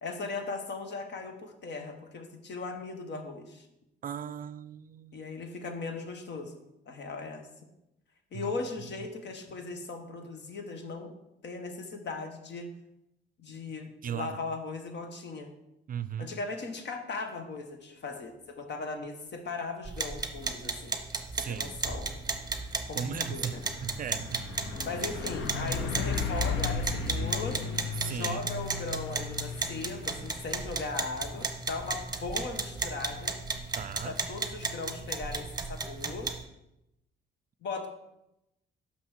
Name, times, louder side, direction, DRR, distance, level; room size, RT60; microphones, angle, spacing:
voice 1, 0.0-3.7 5.1-6.6 6.9-7.4 8.3-11.1 11.4-12.7 13.4-15.5 16.2-20.9 21.4-22.1 22.9-23.6 24.8-27.6 28.0-33.3 34.0-36.3 37.6-37.9, left 3 dB, 60° left, 6 dB, 1.4 m, -38 dB
voice 2, 4.0-5.3 8.3-8.5 14.0-14.4 15.9-16.3 21.4-21.8 22.9-24.5 28.0-28.4 33.8-34.2, right 8 dB, 45° right, 15 dB, 0.4 m, -37 dB
sound 1, 19.8-36.4, right 3 dB, 20° right, 1.0 m, -35 dB
Truck, 21.6-35.9, left 5 dB, 80° left, 0.9 m, -38 dB
6.0 x 5.6 x 6.4 m, 0.88 s
cardioid pair, 90°, 20 cm